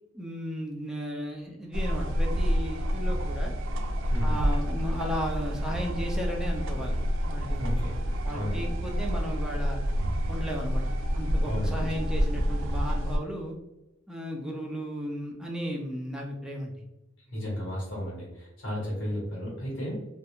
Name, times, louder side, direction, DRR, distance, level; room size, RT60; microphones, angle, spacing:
voice 1, 0.1-3.5 4.2-7.0 7.2-7.9 8.2-9.8 10.3-10.8 11.1-13.6 14.1-16.9, equal, 5° right, -1 dB, 0.3 m, -35 dB
sound 1, 1.7-13.2, equal, 75° right, 0.3 m, -28 dB
voice 2, 7.6-8.0 8.3-8.7 11.4-12.1 17.3-20.0, equal, 70° left, -7 dB, 1.2 m, -34 dB
2.3 x 2.1 x 2.9 m, 0.97 s
head